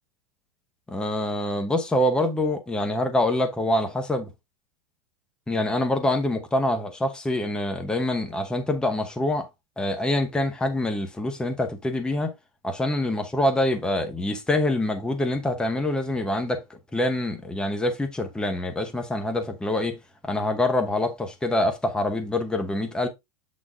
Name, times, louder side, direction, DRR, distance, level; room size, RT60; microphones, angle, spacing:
voice 1, 0.9-4.3 5.5-9.5 9.8-12.3 12.6-16.6 16.9-20.0 20.2-23.1, left 1 dB, 5° left, 0.8 m, -25 dB
7.8 x 4.0 x 3.5 m
supercardioid pair, 170°, 19 cm